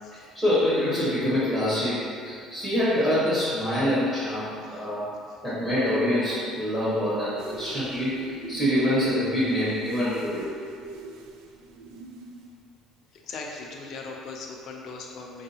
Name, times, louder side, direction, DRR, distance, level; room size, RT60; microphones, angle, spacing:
voice 1, 0.1-10.5, left 1 dB, 5° right, -11 dB, 0.9 m, -25 dB
sound 1, 7.4-12.6, right 2 dB, 85° right, 0.3 m, -41 dB
voice 2, 13.1-15.4, left 3 dB, 45° left, 0 dB, 0.5 m, -39 dB
4.5 x 2.7 x 2.8 m, 2.3 s
cardioid pair, 165°, 0 cm